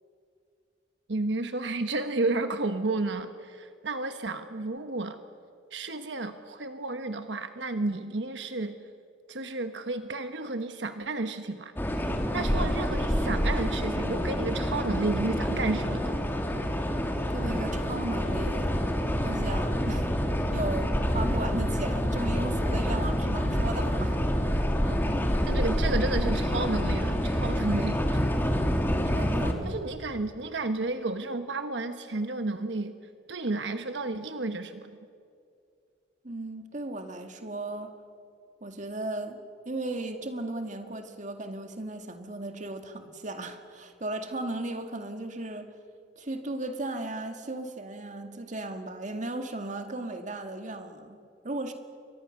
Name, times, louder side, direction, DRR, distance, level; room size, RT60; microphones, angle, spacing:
voice 1, 1.1-5.2 5.7-8.8 9.3-11.7 12.3-16.2 25.5-28.0 29.6-33.0 33.3-35.0, right 2 dB, 80° right, 1.2 m, -32 dB
sound 1, 11.8-29.5, equal, 10° left, 2.2 m, -27 dB
voice 2, 17.3-18.8 19.2-20.1 20.5-24.3 24.8-25.0 27.7-27.9 29.1-29.9 36.2-37.9 38.6-39.4 39.7-45.7 46.2-51.7, right 2 dB, 45° right, 2.0 m, -36 dB
29.0 x 23.5 x 6.6 m
head